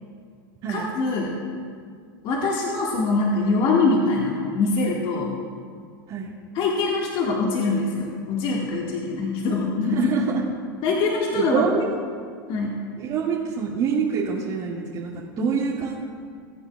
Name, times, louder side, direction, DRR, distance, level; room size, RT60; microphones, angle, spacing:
voice 1, 0.7-1.4 2.2-5.3 6.5-10.3 10.8-11.7 12.5-12.8 15.4-15.5, left 3 dB, 45° left, -2 dB, 1.7 m, -23 dB
voice 2, 9.9-10.4 11.3-11.9 13.0-16.0, right 6 dB, 45° right, -6 dB, 1.9 m, -26 dB
22.5 x 8.8 x 2.3 m, 2.1 s
hypercardioid pair, 105°, 12 cm